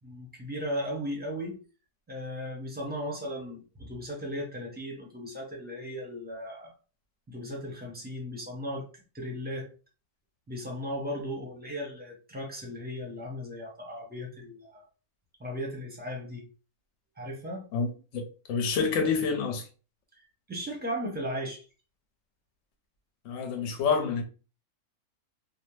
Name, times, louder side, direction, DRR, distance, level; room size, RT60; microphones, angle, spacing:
voice 1, 0.0-1.6 2.1-6.7 7.3-8.8 9.1-9.7 10.5-14.8 15.4-16.4 17.2-17.6 20.5-21.6, equal, 10° right, 0.6 m, -36 dB
voice 2, 17.7-18.2 18.5-19.7 23.2-24.2, left 5 dB, 65° left, 1.0 m, -28 dB
2.7 x 2.1 x 3.1 m
omnidirectional pair, 1.6 m